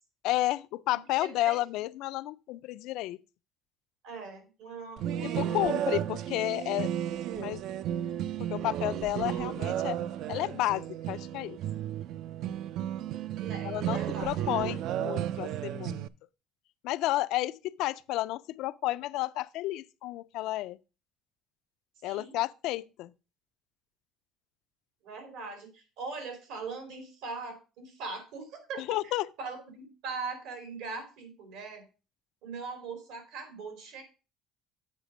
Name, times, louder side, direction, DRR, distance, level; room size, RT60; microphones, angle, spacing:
voice 1, 0.2-3.2 5.2-6.9 7.3-7.6 8.5-10.0 10.3-11.6 13.6-16.0 16.8-20.8 22.0-23.1 28.8-29.3, left 16 dB, 70° left, 0.3 m, -31 dB
voice 2, 1.2-1.6 4.0-5.8 13.4-14.8 22.0-22.3 25.0-29.1 29.4-31.8 32.4-34.0, right 4 dB, 75° right, 2.9 m, -41 dB
sound 1, 5.0-16.1, right 11 dB, 60° right, 0.3 m, -33 dB
8.1 x 5.0 x 4.9 m
cardioid pair, 155°, 0 cm